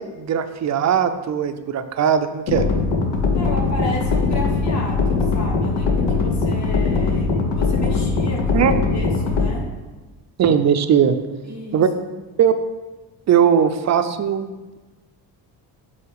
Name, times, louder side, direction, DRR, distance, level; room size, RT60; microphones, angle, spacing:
voice 1, 0.0-2.7 8.5-8.7 10.4-11.2 11.7-11.9 12.4-12.5 13.3-14.5, right 8 dB, 40° right, 9 dB, 0.4 m, -19 dB
sound 1, 2.5-9.5, left 4 dB, 85° left, 1.0 m, -20 dB
voice 2, 3.3-9.7 11.4-11.8 12.1-12.2, left 2 dB, 40° left, -1 dB, 1.5 m, -32 dB
7.9 x 2.8 x 4.7 m, 1.2 s
cardioid pair, 95°, 44 cm